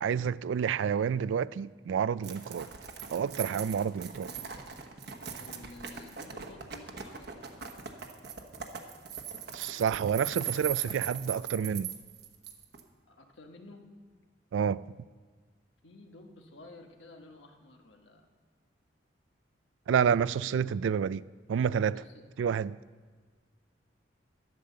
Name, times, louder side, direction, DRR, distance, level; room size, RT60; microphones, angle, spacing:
voice 1, 0.0-2.7 3.1-4.3 9.5-11.9 14.5-14.8 19.9-21.2 21.5-22.0 22.4-22.8, right 7 dB, 90° right, 0.3 m, -29 dB
sound 1, 2.2-12.8, right 8 dB, 60° right, 1.1 m, -40 dB
voice 2, 5.4-7.8 13.1-13.8 15.8-18.3 20.2-20.8 21.9-22.2, left 2 dB, 80° left, 1.4 m, -52 dB
12.0 x 9.8 x 6.6 m
head